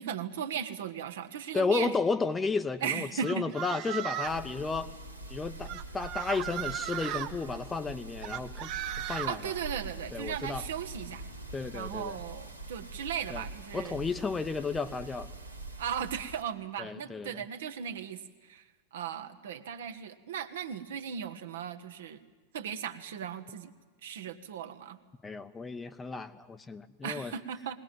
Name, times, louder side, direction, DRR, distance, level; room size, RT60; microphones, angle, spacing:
voice 1, 0.0-1.9 2.8-3.4 9.3-11.2 11.7-14.0 15.8-18.6 18.9-22.2 22.5-23.7 24.0-25.0 27.0-27.8, right 8 dB, 60° right, 8 dB, 1.3 m, -37 dB
voice 2, 1.5-4.9 5.3-9.5 10.1-10.6 11.5-12.2 13.3-13.4 13.7-15.3 16.8-17.4 25.2-27.3, left 4 dB, 15° left, 11 dB, 0.9 m, -33 dB
sound 1, 3.2-4.4 5.6-7.3 8.2-9.3, right 13 dB, 40° right, 1.0 m, -36 dB
sound 2, 4.2-16.4, right 2 dB, 90° right, 2.1 m, -44 dB
20.0 x 19.5 x 9.4 m, 1.4 s
figure-of-eight pair, 90°, 0 cm